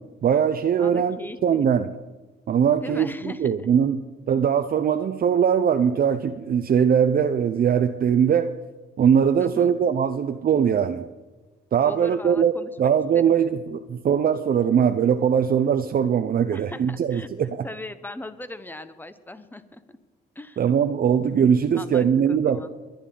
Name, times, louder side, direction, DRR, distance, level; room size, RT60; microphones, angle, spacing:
voice 1, 0.2-1.2 1.4-1.9 2.5-8.5 9.0-11.1 11.7-12.5 12.8-17.7 20.6-22.6, right 8 dB, 50° right, 8 dB, 0.7 m, -21 dB
voice 2, 0.8-1.7 2.8-3.7 9.4-9.8 11.8-12.7 13.1-13.3 16.5-17.3 17.6-20.0 20.3-20.6 21.7-22.7, left 1 dB, 10° left, 11 dB, 1.0 m, -39 dB
21.5 x 10.5 x 3.9 m, 1.2 s
cardioid pair, 90°, 20 cm